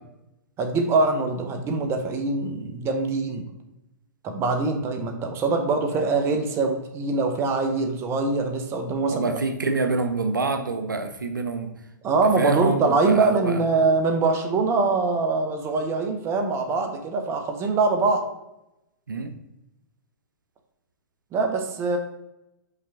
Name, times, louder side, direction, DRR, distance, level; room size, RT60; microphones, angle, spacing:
voice 1, 0.6-3.5 4.2-9.3 12.0-18.2 21.3-22.0, right 3 dB, 25° right, 5 dB, 1.0 m, -23 dB
voice 2, 9.1-11.7 12.4-13.6 19.1-19.3, right 3 dB, 85° right, 8 dB, 0.7 m, -26 dB
5.8 x 4.9 x 3.5 m, 0.91 s
figure-of-eight pair, 110°, 10 cm